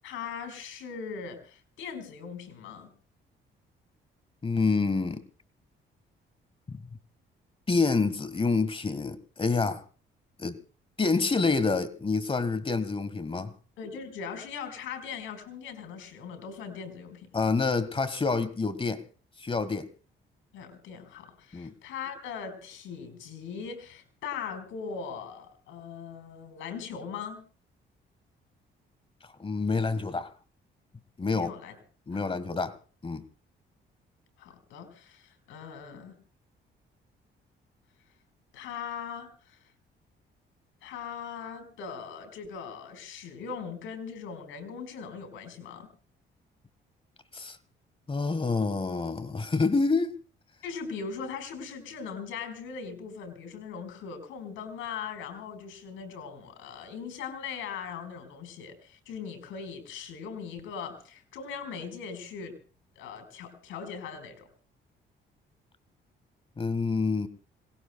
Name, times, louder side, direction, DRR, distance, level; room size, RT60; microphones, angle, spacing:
voice 1, 0.0-2.9 13.8-17.3 20.5-27.4 31.3-31.8 32.1-32.2 34.4-36.1 38.5-39.6 40.8-45.9 50.6-62.6 63.0-64.5, left 6 dB, 90° left, 4.3 m, -40 dB
voice 2, 4.4-5.2 6.7-6.8 7.7-9.8 10.4-10.6 11.0-13.5 17.3-19.0 19.4-19.9 21.5-21.7 29.4-30.3 31.2-31.5 32.1-32.8 33.0-33.2 47.3-47.6 48.1-50.1 66.6-67.3, left 4 dB, 25° left, 1.5 m, -27 dB
26.5 x 19.0 x 2.3 m
cardioid pair, 90°, 20 cm